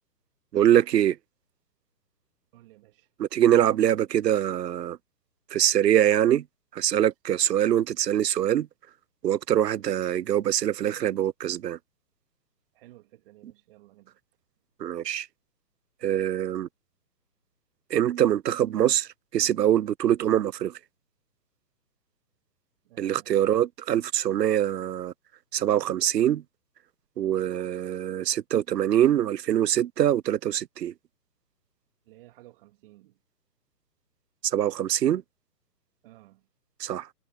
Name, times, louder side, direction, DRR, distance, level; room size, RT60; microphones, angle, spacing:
voice 1, 0.5-1.2 3.2-5.0 5.5-6.4 6.7-8.7 9.2-11.8 14.8-15.3 16.0-16.7 17.9-20.7 23.0-25.1 25.5-26.4 27.2-30.9 34.5-35.2 36.8-37.1, right 11 dB, 80° right, 0.6 m, -24 dB
voice 2, 2.5-3.1 12.7-14.2 16.5-16.6 22.8-23.5 32.0-33.2 36.0-36.5, right 17 dB, 35° right, 2.7 m, -55 dB
hypercardioid pair, 145°, 49 cm